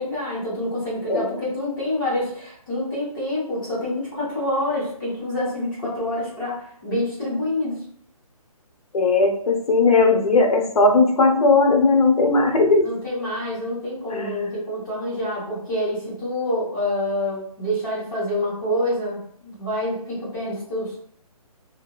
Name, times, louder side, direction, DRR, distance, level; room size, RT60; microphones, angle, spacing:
voice 1, 0.0-7.8 12.8-21.0, left 1 dB, 35° left, -8 dB, 1.3 m, -27 dB
voice 2, 8.9-12.9 14.1-14.3, left 3 dB, 70° left, 3 dB, 0.7 m, -18 dB
2.6 x 2.2 x 2.4 m, 0.62 s
hypercardioid pair, 175°, 19 cm